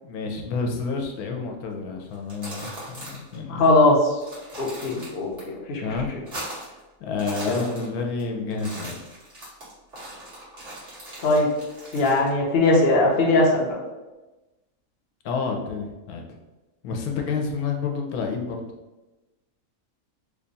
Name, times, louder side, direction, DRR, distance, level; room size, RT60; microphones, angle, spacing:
voice 1, 0.0-3.6 5.8-6.1 7.0-9.0 15.2-16.4 16.8-18.6, left 4 dB, 85° left, 2 dB, 1.1 m, -29 dB
sound 1, 2.1-3.4 3.6-3.7 4.1-5.4 5.7-6.8 7.1-8.2 8.5-12.3, right 1 dB, 45° right, 1.6 m, -39 dB
voice 2, 3.5-4.2 4.6-5.9 7.5-7.7 11.2-11.5 11.9-13.8, left 2 dB, 50° left, -2 dB, 0.8 m, -20 dB
3.3 x 2.3 x 3.9 m, 1.1 s
omnidirectional pair, 1.5 m